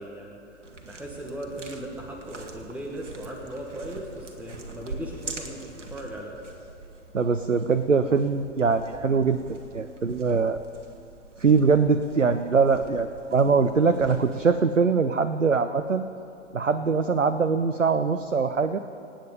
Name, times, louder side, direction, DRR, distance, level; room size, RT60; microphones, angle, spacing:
voice 1, 0.0-6.4, right 1 dB, 5° right, -2 dB, 1.4 m, -38 dB
sound 1, 0.6-14.5, right 3 dB, 70° right, 1.7 m, -44 dB
voice 2, 7.1-9.4 9.7-10.6 11.4-16.1 16.5-18.8, right 5 dB, 90° right, 10 dB, 0.6 m, -22 dB
26.0 x 8.9 x 5.2 m, 2.7 s
figure-of-eight pair, 105°, 37 cm